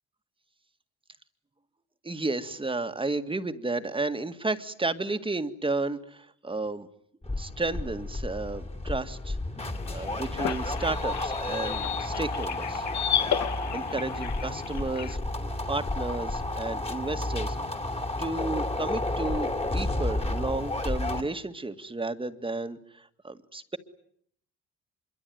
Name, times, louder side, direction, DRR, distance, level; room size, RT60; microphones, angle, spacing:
voice 1, 2.0-6.9 7.3-9.4 9.9-12.8 13.7-15.2 15.7-17.6 18.2-23.8, right 2 dB, 15° right, 9 dB, 2.0 m, -32 dB
sound 1, 7.2-21.2, left 2 dB, 20° left, 3.1 m, -31 dB
sound 2, 9.7-15.2, left 10 dB, 65° left, 1.7 m, -33 dB
26.0 x 23.5 x 9.5 m, 0.68 s
cardioid pair, 90°, 30 cm